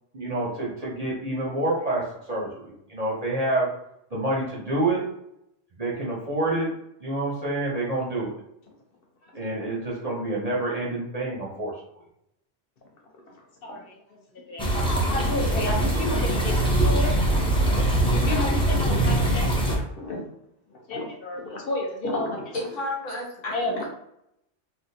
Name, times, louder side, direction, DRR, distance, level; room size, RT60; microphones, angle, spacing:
voice 1, 0.1-3.7 4.1-5.0 5.8-6.7 7.0-8.4 9.3-11.7, right 2 dB, 40° right, -5 dB, 0.7 m, -27 dB
voice 2, 13.6-14.0 14.3-17.1 17.4-17.6 18.0-20.3 20.7-22.6 23.5-23.8, left 2 dB, 55° left, 0 dB, 1.0 m, -31 dB
sound 1, 14.6-19.8, right 1 dB, 5° left, 0.4 m, -22 dB
voice 3, 22.5-23.8, left 1 dB, 85° left, -3 dB, 1.5 m, -32 dB
3.5 x 2.3 x 2.6 m, 0.78 s
omnidirectional pair, 1.3 m